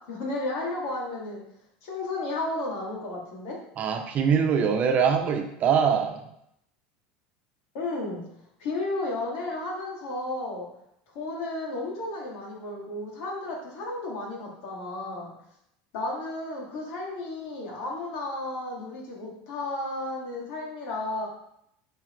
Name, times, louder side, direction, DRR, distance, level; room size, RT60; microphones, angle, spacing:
voice 1, 0.0-1.4 1.8-3.6 7.7-8.2 8.6-10.7 11.1-15.3 15.9-21.3, left 2 dB, 70° left, -3 dB, 2.8 m, -33 dB
voice 2, 3.8-6.2, right 7 dB, 40° right, 5 dB, 1.0 m, -23 dB
8.8 x 5.0 x 3.4 m, 0.76 s
supercardioid pair, 120°, 4 cm